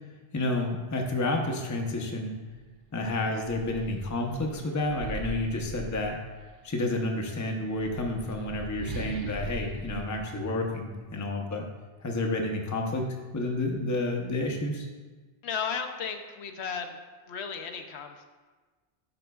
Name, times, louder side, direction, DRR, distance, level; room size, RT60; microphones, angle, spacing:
voice 1, 0.3-2.4 2.9-6.2 6.6-11.7 12.0-14.9, left 2 dB, 20° left, 1 dB, 0.6 m, -30 dB
sound 1, 2.5-2.6 3.0-6.6 7.6-11.2, right 3 dB, 60° right, 0.6 m, -41 dB
voice 2, 15.4-17.0 17.3-18.3, left 6 dB, 75° left, 5 dB, 0.9 m, -34 dB
10.5 x 6.0 x 2.3 m, 1.3 s
omnidirectional pair, 1.1 m